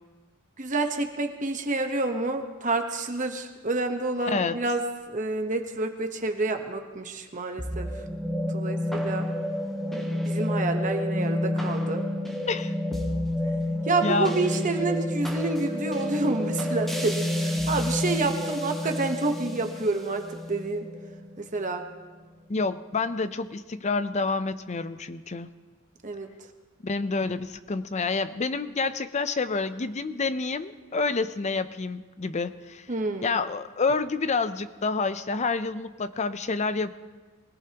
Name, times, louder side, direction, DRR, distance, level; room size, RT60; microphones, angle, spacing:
voice 1, 0.6-4.8 5.1-7.9 8.5-9.3 10.3-12.0 13.9-20.9 21.4-21.9 26.0-26.3 32.9-33.4, right 3 dB, 35° right, 5 dB, 1.1 m, -28 dB
sound 1, 7.6-22.0, left 1 dB, ahead, 1.3 m, -29 dB
voice 2, 14.0-14.3 22.5-25.5 26.8-32.9 33.2-36.9, left 4 dB, 30° left, 12 dB, 0.6 m, -28 dB
23.5 x 17.5 x 3.0 m, 1.3 s
head